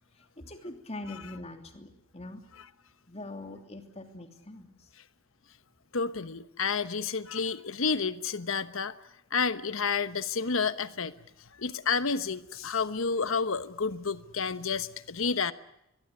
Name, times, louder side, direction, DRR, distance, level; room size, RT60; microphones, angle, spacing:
voice 1, 0.4-2.4 3.1-4.7, left 2 dB, 30° left, 6 dB, 3.0 m, -42 dB
voice 2, 5.9-8.9 9.3-11.1 11.6-15.5, left 5 dB, 75° left, 13 dB, 1.1 m, -30 dB
23.0 x 22.5 x 8.4 m, 0.83 s
head